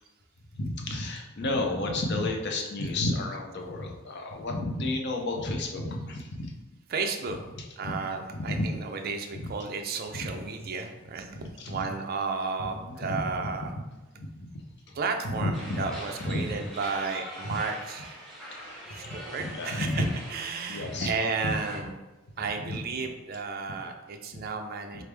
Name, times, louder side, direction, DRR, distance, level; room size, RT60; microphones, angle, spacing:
voice 1, 0.5-6.5 7.8-7.9 8.5-8.7 9.4-9.5 10.2-10.3 11.6-11.8 12.8-13.2 14.2-14.5 14.9-15.0 15.2-15.9 16.2-16.5 17.4-17.5 19.0-19.1 19.4-20.1 20.7-21.1 22.7-22.8 24.3-24.4, left 2 dB, 60° left, 2 dB, 0.6 m, -31 dB
voice 2, 6.9-7.4 7.8-13.7 14.9-18.3 18.9-21.9 22.4-25.0, right 4 dB, 50° right, 4 dB, 0.5 m, -33 dB
sound 1, 15.5-21.8, equal, ahead, 1.1 m, -43 dB
3.9 x 3.3 x 3.3 m, 1.1 s
head